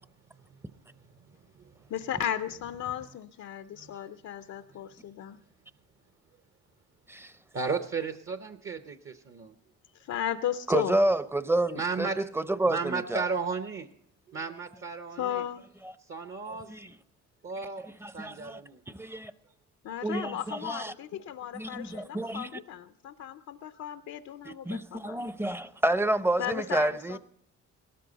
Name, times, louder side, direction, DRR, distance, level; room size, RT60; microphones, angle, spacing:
voice 1, 1.9-5.4 9.9-11.0 15.2-15.6 19.8-25.2 26.4-27.2, left 10 dB, 65° left, 0.6 m, -35 dB
voice 2, 7.5-9.5 11.7-12.2 12.7-13.9 14.3-15.4 16.1-16.7 17.4-17.8 18.1-18.8, right 5 dB, 45° right, 0.9 m, -34 dB
voice 3, 10.7-13.3 16.5-16.9 18.0-18.6 18.9-19.3 20.0-20.9 21.5-22.5 24.4-27.2, right 1 dB, 10° right, 0.7 m, -29 dB
18.0 x 13.0 x 4.0 m
cardioid pair, 90°, 30 cm